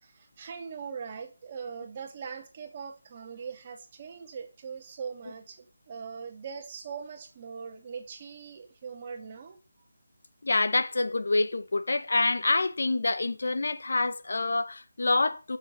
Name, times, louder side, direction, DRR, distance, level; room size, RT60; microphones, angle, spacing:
voice 1, 0.0-9.6, right 6 dB, 30° right, 2.4 m, -41 dB
voice 2, 10.4-15.6, left 3 dB, 70° left, 1.3 m, -27 dB
10.0 x 7.4 x 6.8 m
figure-of-eight pair, 165°, 0 cm